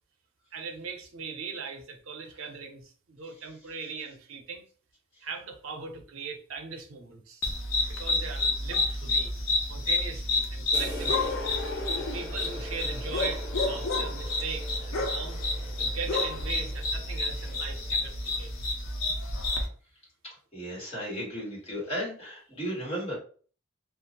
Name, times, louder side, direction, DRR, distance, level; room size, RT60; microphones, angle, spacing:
voice 1, 0.5-4.6 5.2-7.4 7.9-9.3 9.7-11.4 12.0-15.4 15.8-18.5 22.8-22.9, right 5 dB, 90° right, 4 dB, 0.6 m, -39 dB
sound 1, 7.4-19.7, left 2 dB, 80° left, 0.6 m, -30 dB
sound 2, 10.7-18.3, left 1 dB, 55° left, 1.3 m, -43 dB
voice 2, 20.5-23.1, equal, 30° left, -6 dB, 1.4 m, -34 dB
2.5 x 2.0 x 2.8 m, 0.41 s
head